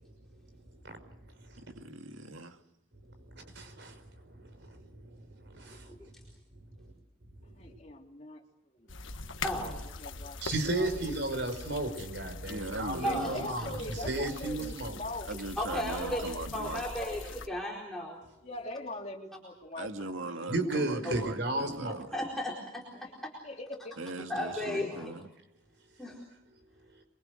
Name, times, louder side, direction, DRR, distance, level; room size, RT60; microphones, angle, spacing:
voice 1, 1.8-2.6 9.5-9.7 12.0-12.1 12.5-13.9 15.3-16.8 19.8-22.1 24.0-25.3, right 2 dB, 80° right, 6 dB, 2.3 m, -40 dB
voice 2, 3.3-4.0 4.3-6.0 10.4-15.0 20.5-22.0, right 2 dB, 60° right, 7 dB, 5.3 m, -34 dB
voice 3, 7.4-8.9 9.7-10.4 10.7-11.0 13.0-15.3 15.9-17.2 18.4-20.5 22.9-23.1 23.4-23.9, left 2 dB, 35° left, 1 dB, 3.5 m, -42 dB
sound 1, 8.9-17.5, left 3 dB, 75° left, 1.5 m, -42 dB
voice 4, 9.4-9.8 13.0-13.4 15.6-18.2 21.0-21.1 22.1-22.8 24.3-25.1 26.0-26.2, equal, ahead, -3 dB, 4.4 m, -34 dB
28.0 x 23.5 x 6.6 m, 0.83 s
head